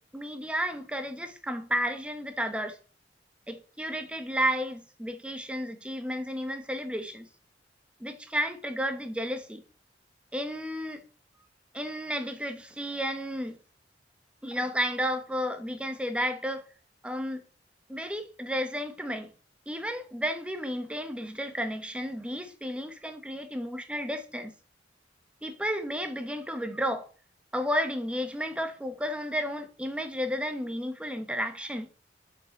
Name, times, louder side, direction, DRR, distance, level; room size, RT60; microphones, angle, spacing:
voice 1, 0.1-2.8 3.5-7.3 8.0-9.6 10.3-11.0 11.7-13.6 14.4-16.7 17.0-17.4 17.9-19.3 19.7-24.5 25.4-27.1 27.5-31.9, equal, 5° right, 0.9 m, -32 dB
7.0 x 5.0 x 4.3 m
head